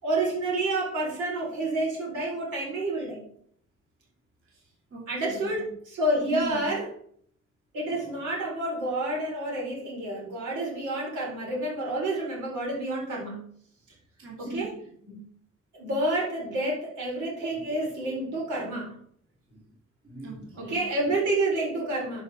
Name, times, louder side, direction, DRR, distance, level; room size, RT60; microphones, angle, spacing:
voice 1, 0.0-3.2 5.1-5.6 5.9-6.9 7.7-13.4 14.4-14.7 15.7-18.9 20.6-22.2, right 1 dB, 80° right, -3 dB, 4.3 m, -29 dB
voice 2, 4.4-5.7 6.3-6.7 14.2-15.0 17.6-17.7 19.5-19.6 20.0-21.1, right 1 dB, 45° right, -3 dB, 2.7 m, -41 dB
11.5 x 4.8 x 4.2 m, 0.63 s
cardioid pair, 90°, 30 cm